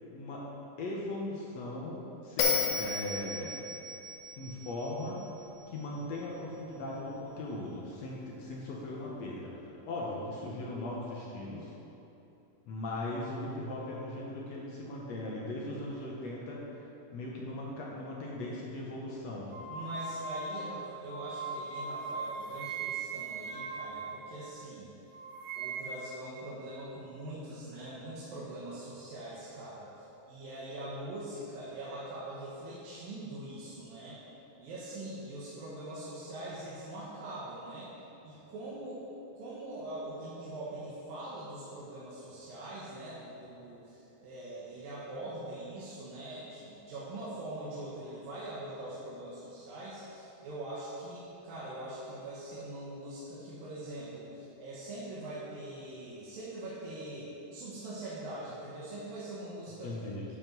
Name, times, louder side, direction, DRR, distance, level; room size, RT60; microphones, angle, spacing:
voice 1, 0.1-0.5 0.8-3.6 4.4-5.2 5.7-11.7 12.7-19.5 59.8-60.3, left 1 dB, 65° left, -4 dB, 1.7 m, -39 dB
Bell, 2.4-5.6, left 4 dB, 85° left, 3.3 m, -33 dB
sound 1, 19.5-24.8 25.1-26.2, right 4 dB, 45° right, 2.3 m, -39 dB
voice 2, 19.7-24.9 25.6-34.2 34.6-37.9 38.2-39.1 39.4-60.0, right 1 dB, 75° right, -8 dB, 3.0 m, -43 dB
10.5 x 5.2 x 6.0 m, 3.0 s
omnidirectional pair, 4.3 m